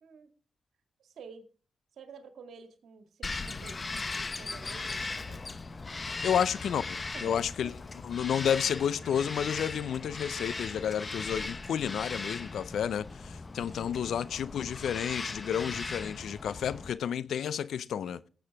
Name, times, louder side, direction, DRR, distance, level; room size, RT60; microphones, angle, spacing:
voice 1, 0.0-0.3 1.0-1.4 1.9-5.5 6.3-6.4 7.1-7.7, right 5 dB, 75° right, 1.9 m, -50 dB
Bird vocalization bird call bird song, 3.2-16.9, left 3 dB, 40° left, 1.1 m, -38 dB
voice 2, 6.2-7.7 8.0-18.2, left 8 dB, 75° left, 0.5 m, -31 dB
18.5 x 7.9 x 3.5 m
supercardioid pair, 40°, 0 cm